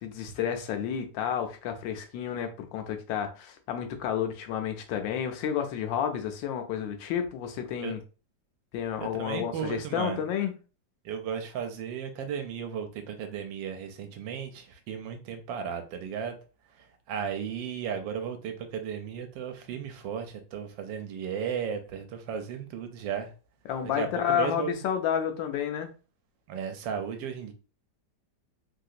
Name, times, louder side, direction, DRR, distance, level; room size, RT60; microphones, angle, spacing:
voice 1, 0.0-8.0 8.7-10.5 23.7-25.9, left 9 dB, 85° left, 1.3 m, -30 dB
voice 2, 9.0-10.2 11.0-16.4 16.8-23.3 23.8-24.8 26.5-27.5, right 7 dB, 85° right, 1.3 m, -35 dB
3.4 x 2.8 x 2.4 m
omnidirectional pair, 2.0 m